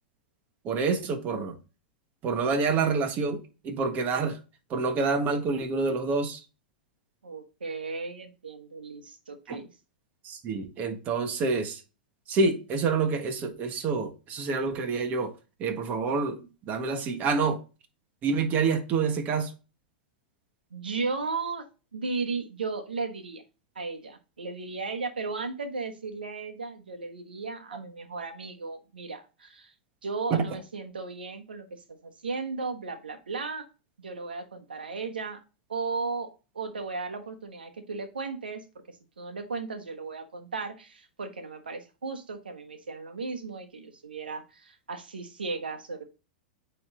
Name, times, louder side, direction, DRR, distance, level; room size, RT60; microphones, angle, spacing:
voice 1, 0.6-1.6 2.2-4.4 4.7-6.4 9.5-9.6 10.2-11.8 12.3-15.3 15.6-17.6 18.2-19.5 30.3-30.4, right 4 dB, 35° right, 1.5 m, -27 dB
voice 2, 7.2-9.7 20.7-21.6 21.9-23.4 23.7-29.7 30.0-33.6 34.0-35.4 35.7-46.0, right 4 dB, 80° right, 1.3 m, -35 dB
8.7 x 3.5 x 3.8 m
figure-of-eight pair, 100°, 5 cm